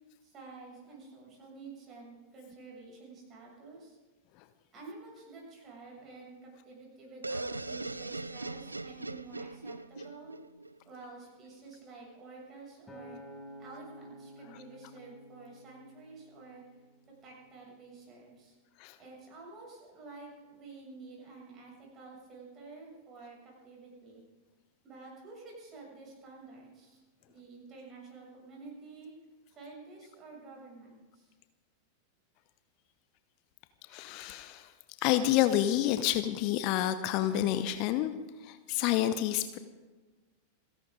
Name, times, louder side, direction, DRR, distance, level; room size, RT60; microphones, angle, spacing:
voice 1, 0.2-4.0 4.7-10.3 10.8-13.2 13.6-16.6 17.2-18.6 19.0-24.2 24.8-29.1 29.5-31.3, right 3 dB, 30° right, -2 dB, 7.0 m, -50 dB
sound 1, 7.2-11.0, right 2 dB, 80° right, 0.4 m, -40 dB
Acoustic guitar, 12.9-17.2 17.8-18.1, equal, 5° left, 6.9 m, -51 dB
voice 2, 33.9-34.7 35.0-38.1 38.4-39.6, left 13 dB, 45° left, 11 dB, 0.8 m, -29 dB
29.0 x 11.5 x 3.8 m, 1.3 s
figure-of-eight pair, 90°, 0 cm